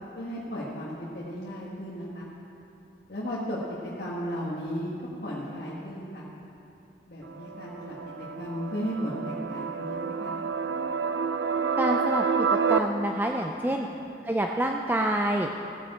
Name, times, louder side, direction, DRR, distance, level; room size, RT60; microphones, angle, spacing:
voice 1, 0.1-2.3 3.1-4.9 5.2-6.2 7.1-10.4 13.7-13.9, equal, 60° left, -7 dB, 1.6 m, -35 dB
sound 1, 7.2-12.8, right 5 dB, 75° right, 0.5 m, -29 dB
voice 2, 11.8-12.3 12.7-13.9 14.3-15.5, right 1 dB, 10° right, 2 dB, 0.4 m, -27 dB
15.5 x 9.4 x 4.3 m, 2.8 s
head